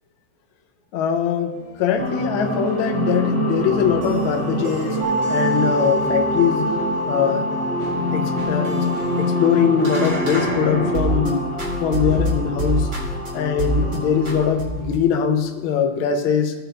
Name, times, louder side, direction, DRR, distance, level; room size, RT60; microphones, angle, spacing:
voice 1, 0.9-1.5 1.8-5.0 5.3-6.7 7.1-7.4 8.1-8.8 9.2-11.5 11.8-12.9 13.3-16.5, left 7 dB, 80° left, 4 dB, 1.1 m, -21 dB
sound 1, 1.5-11.3 11.6-13.3 13.6-14.0 14.2-15.0, right 1 dB, 45° right, 2.1 m, -29 dB
sound 2, 2.0-14.4, equal, 5° left, 1.3 m, -26 dB
sound 3, 5.0-14.8, equal, 90° right, 2.6 m, -29 dB
16.5 x 5.8 x 3.5 m, 1.2 s
omnidirectional pair, 3.4 m